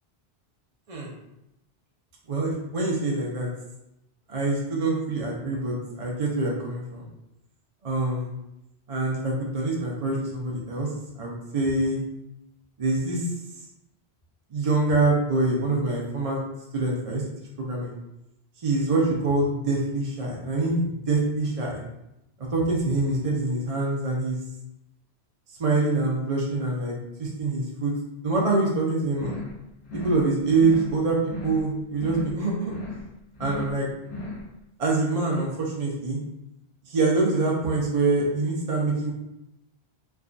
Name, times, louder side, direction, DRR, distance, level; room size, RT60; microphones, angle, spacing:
voice 1, 2.3-3.5 4.3-7.1 7.8-8.3 8.9-10.9 11.2-12.0 12.8-13.3 14.5-16.4 16.7-17.2 17.6-18.0 18.6-21.8 22.4-24.4 25.6-27.9 28.2-29.4 29.9-32.8 33.4-33.9 34.8-36.2 36.9-39.1, right 3 dB, 45° right, -3 dB, 0.5 m, -25 dB
sound 1, 29.1-29.6 29.8-30.3 30.5-31.0 31.2-31.7 31.9-32.4 32.6-33.1 33.3-33.8 34.0-34.5, left 2 dB, 75° left, 1.1 m, -36 dB
3.3 x 2.2 x 2.5 m, 0.87 s
omnidirectional pair, 1.1 m